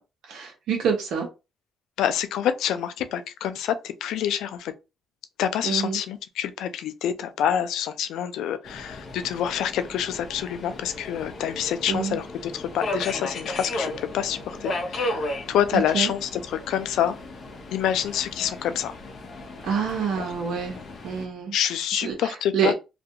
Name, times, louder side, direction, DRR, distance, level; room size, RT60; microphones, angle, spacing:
voice 1, 0.3-1.3 5.6-6.0 11.9-12.2 15.7-16.1 19.6-20.8 21.0-21.5 21.9-22.7, right 6 dB, 75° right, 0.7 m, -27 dB
voice 2, 2.0-4.7 5.4-17.2 17.7-19.0 20.2-20.3 21.5-22.7, left 10 dB, 85° left, 0.3 m, -27 dB
Subway metro underground, 8.6-21.3, left 1 dB, 50° left, 0.6 m, -35 dB
2.4 x 2.2 x 2.8 m
cardioid pair, 90°, 0 cm